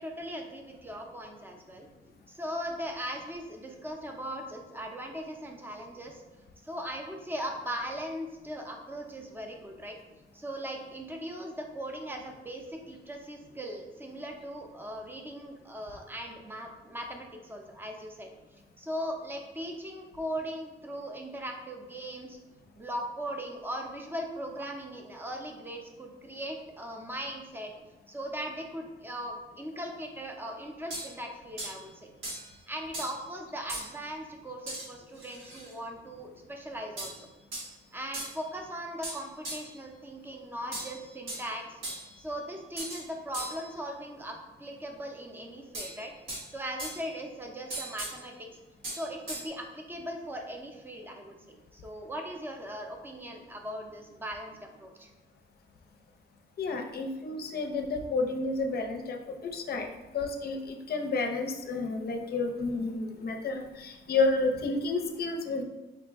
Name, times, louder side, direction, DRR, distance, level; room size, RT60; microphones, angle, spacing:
voice 1, 0.0-1.9 2.3-6.2 6.6-10.0 10.3-18.3 18.8-22.4 22.7-27.7 28.1-32.1 32.4-37.1 37.9-41.8 42.2-46.1 46.5-48.3 49.0-51.3 51.7-55.1, equal, 10° right, 2 dB, 0.6 m, -39 dB
sound 1, 30.9-31.2 31.6-31.8 32.2-32.5 32.9-33.2 33.7-33.9 34.7-34.9 35.2-35.7 37.0-37.2 37.5-37.7 38.1-38.4 39.0-39.7 40.7-41.5 41.8-42.2 42.8-43.0 43.3-43.7 45.7-46.5 46.8-47.2 47.7-48.2 48.8-49.5, right 1 dB, 85° right, 1.4 m, -38 dB
voice 2, 56.6-59.9 60.1-65.6, left 3 dB, 50° left, 4 dB, 0.6 m, -30 dB
4.9 x 2.1 x 3.5 m, 1.1 s
cardioid pair, 90°, 20 cm